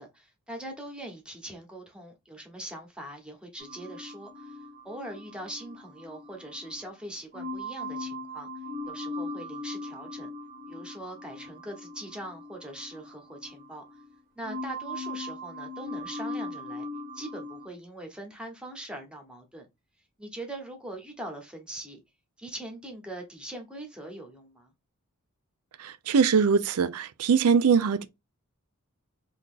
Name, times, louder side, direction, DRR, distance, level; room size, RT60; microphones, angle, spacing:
voice 1, 0.0-4.6 4.8-8.5 8.8-10.3 10.7-13.8 14.3-16.9 17.1-19.7 20.2-22.0 22.4-24.7, right 1 dB, 5° right, 0.8 m, -42 dB
sound 1, 3.6-6.9 7.3-14.1 14.4-17.7, left 1 dB, 40° right, 0.8 m, -39 dB
voice 2, 25.8-28.0, right 6 dB, 80° right, 0.4 m, -22 dB
2.8 x 2.5 x 3.6 m
head